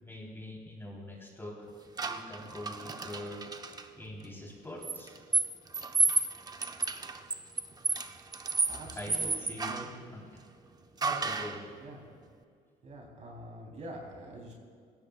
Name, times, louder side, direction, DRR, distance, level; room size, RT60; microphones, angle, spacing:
voice 1, 0.0-1.7 2.0-3.4 4.0-5.1 8.9-10.4 10.9-11.6, left 1 dB, 15° left, -2 dB, 3.6 m, -44 dB
sound 1, 2.0-3.8 4.8-10.0 11.0-11.6, right 3 dB, 25° right, 0.8 m, -32 dB
voice 2, 8.7-10.1 11.8-12.1 12.8-14.5, right 1 dB, 45° right, -1 dB, 3.5 m, -45 dB
20.5 x 16.5 x 2.4 m, 2.2 s
cardioid pair, 110°, 17 cm